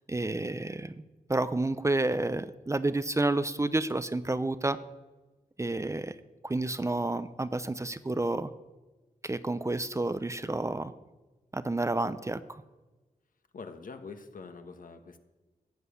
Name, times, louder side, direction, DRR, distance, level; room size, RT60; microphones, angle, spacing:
voice 1, 0.1-0.9 1.3-4.8 5.6-6.2 6.4-8.5 9.2-10.9 11.5-12.6, right 2 dB, 20° right, 13 dB, 0.6 m, -30 dB
voice 2, 13.5-15.2, left 4 dB, 65° left, 7 dB, 1.5 m, -44 dB
14.0 x 7.6 x 8.4 m, 1.2 s
wide cardioid pair, 85°, 15 cm